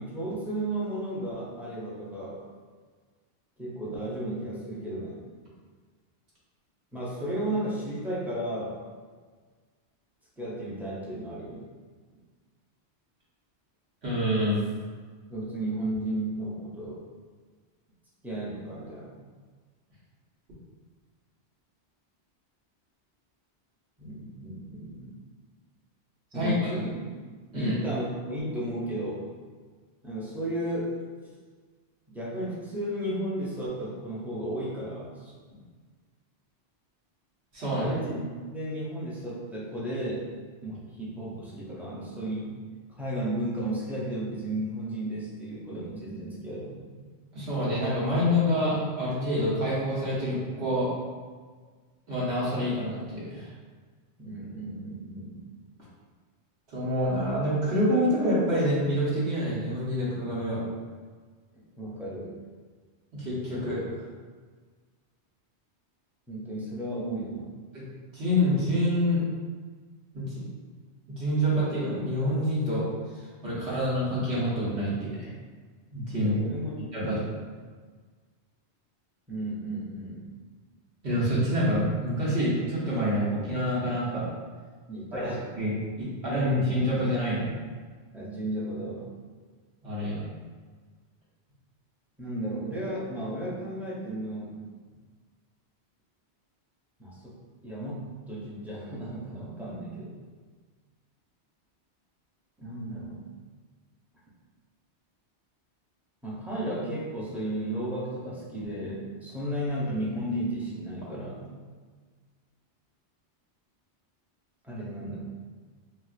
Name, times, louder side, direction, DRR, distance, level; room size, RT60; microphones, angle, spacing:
voice 1, 0.0-2.4 3.6-5.2 6.9-8.8 10.4-11.7 15.3-17.0 18.2-19.1 24.0-25.2 26.3-26.9 27.5-29.2 30.0-30.9 32.1-35.3 37.7-38.2 38.5-40.2 40.6-42.5 42.9-46.8 54.2-55.4 61.8-62.3 66.3-67.5 76.2-77.2 79.3-80.3 84.9-85.4 88.1-89.1 92.2-94.5 97.0-97.4 97.6-100.1 102.6-103.2 106.2-111.5 114.6-115.2, right 1 dB, ahead, -7 dB, 0.4 m, -34 dB
voice 2, 14.0-14.6 26.3-26.6 27.5-27.7 37.5-37.9 47.3-50.9 52.1-53.5 56.7-60.6 63.1-63.8 67.7-67.9 68.1-69.2 70.1-70.4 71.1-72.9 73.4-75.3 75.9-76.3 76.9-77.2 81.0-84.3 85.1-85.7 86.0-87.5 89.8-90.2, equal, 70° right, -8 dB, 1.2 m, -27 dB
4.3 x 2.1 x 2.4 m, 1.5 s
omnidirectional pair, 1.2 m